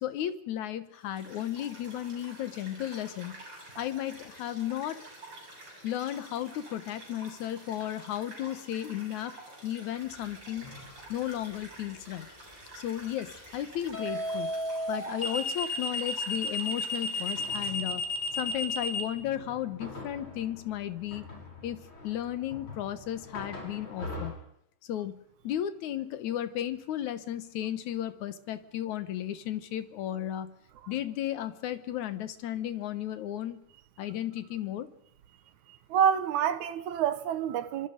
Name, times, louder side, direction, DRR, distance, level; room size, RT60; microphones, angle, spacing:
voice 1, 0.0-3.4 3.8-5.0 5.8-9.3 9.6-10.7 11.1-12.3 12.8-14.5 14.9-18.0 18.4-21.2 21.6-24.3 24.8-30.5 30.9-33.6 34.0-34.9, left 11 dB, 70° left, 2.4 m, -34 dB
sound 1, 1.0-17.7, right 1 dB, 35° right, 7.5 m, -49 dB
sound 2, 10.6-11.0 13.9-19.0, left 2 dB, 15° left, 3.4 m, -32 dB
sound 3, 17.4-24.3, left 2 dB, 35° left, 6.3 m, -44 dB
voice 2, 35.9-37.9, right 9 dB, 70° right, 2.3 m, -27 dB
26.5 x 24.0 x 5.2 m
omnidirectional pair, 3.7 m